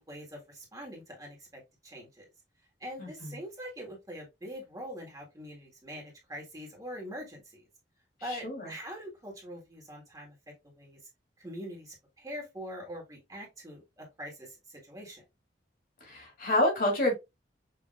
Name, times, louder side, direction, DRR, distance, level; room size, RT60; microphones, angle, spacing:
voice 1, 0.0-2.2 2.8-7.7 8.2-10.3 10.8-11.0 11.4-15.2, equal, 20° right, 1.8 m, -43 dB
voice 2, 3.0-3.4 8.3-8.7 16.0-17.1, left 1 dB, 55° left, 3.0 m, -28 dB
5.9 x 3.2 x 2.5 m
head